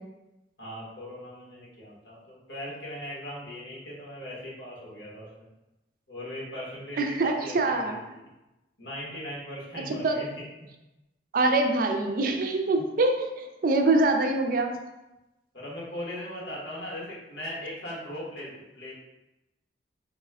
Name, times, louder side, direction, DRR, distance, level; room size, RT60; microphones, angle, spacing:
voice 1, 0.6-5.5 6.1-8.2 8.8-10.7 15.5-18.9, left 1 dB, 80° left, -5 dB, 1.3 m, -39 dB
voice 2, 7.0-8.0 9.8-10.2 11.3-14.7, right 2 dB, 55° right, 4 dB, 0.4 m, -24 dB
4.2 x 2.1 x 3.4 m, 0.99 s
head